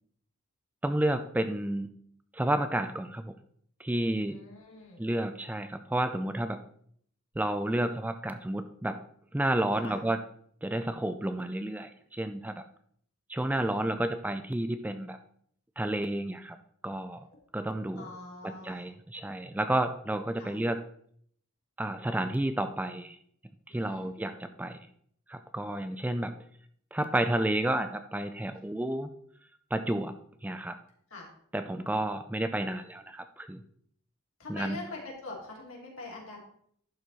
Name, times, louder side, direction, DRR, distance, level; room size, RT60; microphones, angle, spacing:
voice 1, 0.8-1.9 2.3-3.4 3.8-4.4 5.0-6.6 7.4-9.0 9.3-10.2 10.6-12.6 13.3-15.2 15.8-16.6 16.8-17.3 17.5-18.1 18.4-20.8 21.8-23.2 23.7-24.8 25.3-26.3 26.9-29.1 29.7-30.8 31.5-33.6 34.5-34.8, right 1 dB, 10° right, 9 dB, 0.3 m, -31 dB
voice 2, 4.3-5.0 9.8-10.0 13.5-13.9 17.9-18.9 20.4-20.6 23.7-24.1 28.5-28.6 31.1-31.3 34.4-36.4, left 3 dB, 70° left, -2 dB, 2.8 m, -44 dB
11.5 x 4.6 x 4.1 m, 0.64 s
head